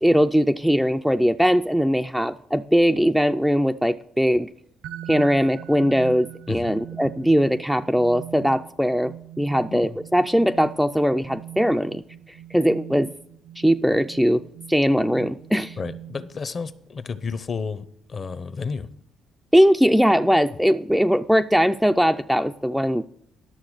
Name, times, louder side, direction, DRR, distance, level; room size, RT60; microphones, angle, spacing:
voice 1, 0.0-4.5 5.1-12.0 12.3-13.1 13.6-14.4 14.7-15.8 19.5-23.1, equal, ahead, 7 dB, 0.3 m, -20 dB
sound 1, 4.8-16.6, right 12 dB, 85° right, 0.5 m, -41 dB
voice 2, 15.8-18.9, left 5 dB, 35° left, 15 dB, 0.7 m, -31 dB
11.5 x 6.8 x 6.3 m, 0.71 s
cardioid pair, 140°, 0 cm